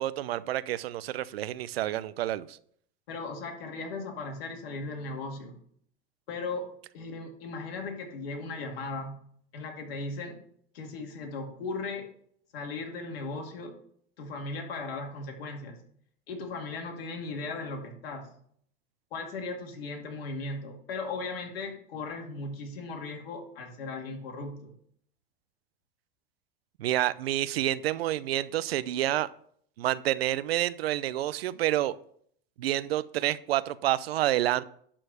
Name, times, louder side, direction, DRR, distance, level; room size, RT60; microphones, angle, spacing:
voice 1, 0.0-2.6 26.8-29.3 29.8-31.9 32.6-34.6, right 14 dB, 90° right, 16 dB, 0.6 m, -28 dB
voice 2, 3.1-5.6 6.3-6.7 6.9-9.2 9.5-10.4 10.7-12.1 12.5-13.7 14.2-15.8 16.3-18.3 19.1-24.7, left 3 dB, 85° left, 1 dB, 2.5 m, -37 dB
11.5 x 4.5 x 6.5 m, 0.64 s
supercardioid pair, 110°, 29 cm